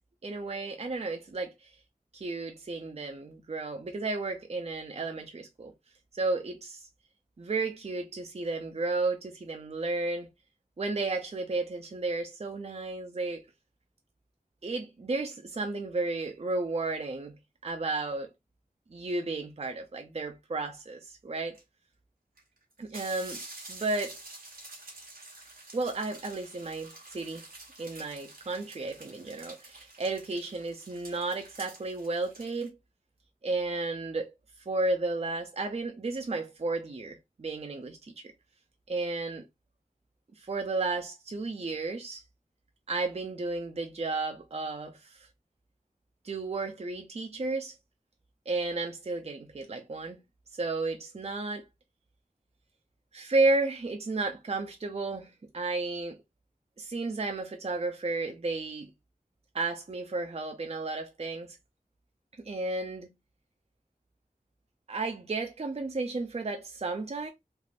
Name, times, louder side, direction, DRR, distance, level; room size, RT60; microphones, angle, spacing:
voice 1, 0.2-1.7 2.1-5.7 6.1-6.9 7.4-10.3 10.8-13.4 14.6-17.3 17.6-18.3 18.9-21.6 22.8-23.4 23.7-24.2 25.7-27.4 27.8-32.8 33.4-34.3 34.7-38.2 38.9-39.4 40.4-42.2 42.9-45.3 46.2-47.7 48.5-50.2 50.5-51.7 53.1-56.2 56.8-58.9 59.5-61.6 62.4-63.1 64.9-67.3, right 3 dB, 45° right, 0.5 m, -33 dB
sound 1, 21.5-21.6 22.4-22.5 22.7-32.7, right 2 dB, 90° right, 1.2 m, -48 dB
3.3 x 2.5 x 2.4 m
wide cardioid pair, 55°, 15 cm